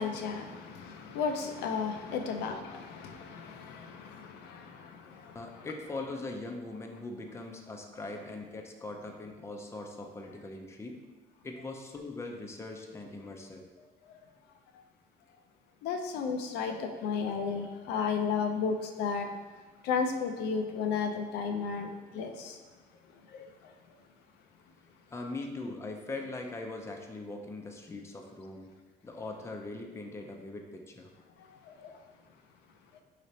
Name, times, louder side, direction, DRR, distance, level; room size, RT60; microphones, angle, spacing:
voice 1, 0.0-5.4 15.8-19.3 19.8-22.6 23.3-23.5 31.7-31.9, left 5 dB, 85° left, 4 dB, 0.5 m, -33 dB
voice 2, 5.3-11.0 11.4-13.6 25.1-28.7 29.0-31.1, left 2 dB, 15° left, 2 dB, 0.5 m, -41 dB
4.8 x 3.3 x 2.7 m, 1.3 s
cardioid pair, 110°, 17 cm